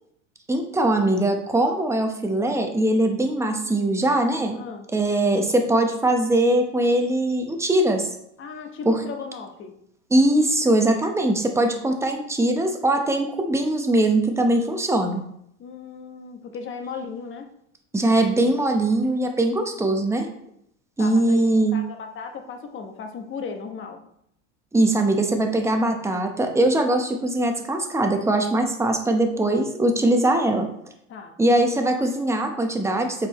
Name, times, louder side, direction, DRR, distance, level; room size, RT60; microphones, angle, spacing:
voice 1, 0.5-4.6 4.9-8.1 8.8-9.0 10.1-15.2 17.9-20.3 21.0-21.8 24.7-30.7 31.4-33.3, right 1 dB, 5° right, 4 dB, 0.9 m, -21 dB
voice 2, 4.5-4.9 8.4-9.8 15.6-17.5 21.0-24.0 31.1-31.4, left 5 dB, 35° left, 5 dB, 1.1 m, -36 dB
7.6 x 4.5 x 3.0 m, 0.74 s
supercardioid pair, 110°, 37 cm